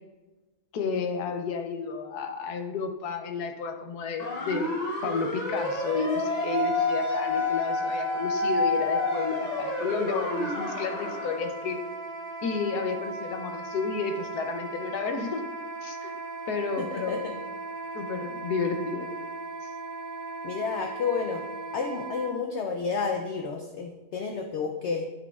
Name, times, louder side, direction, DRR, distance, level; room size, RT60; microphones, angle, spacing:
voice 1, 0.7-11.8 12.4-15.4 15.8-16.1 16.5-17.4 17.9-19.1 19.6-19.7, left 5 dB, 90° left, 5 dB, 1.3 m, -31 dB
sound 1, 4.2-11.4, left 2 dB, 30° left, 0.9 m, -29 dB
Wind instrument woodwind instrument, 5.5-22.3, right 3 dB, 80° right, 1.8 m, -38 dB
voice 2, 16.8-17.3 20.4-21.4 21.7-25.0, left 5 dB, 65° left, 4 dB, 0.7 m, -31 dB
8.9 x 6.0 x 2.4 m, 1.1 s
omnidirectional pair, 1.6 m